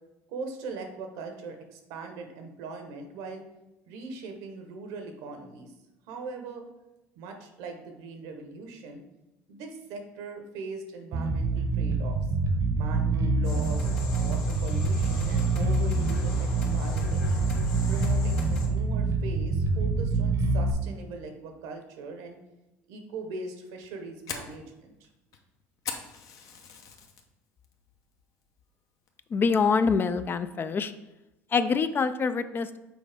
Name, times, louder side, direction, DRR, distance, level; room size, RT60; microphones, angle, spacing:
voice 1, 0.3-3.4 3.9-5.7 6.1-6.6 7.2-9.0 9.5-12.2 12.7-17.4 17.9-22.4 22.9-25.1, right 3 dB, 75° right, 4 dB, 1.0 m, -40 dB
Bass guitar, 11.1-20.7, right 3 dB, 50° right, 0.8 m, -26 dB
sound 1, 13.4-18.7, left 3 dB, 80° left, 1.4 m, -37 dB
Fire, 23.7-27.2 27.6-28.0 28.4-28.5 29.1-29.4, left 6 dB, 60° left, 0.8 m, -40 dB
voice 2, 29.3-30.9 31.5-32.8, left 5 dB, 30° left, 11 dB, 0.4 m, -25 dB
6.2 x 4.4 x 3.4 m, 0.98 s
supercardioid pair, 85°, 7 cm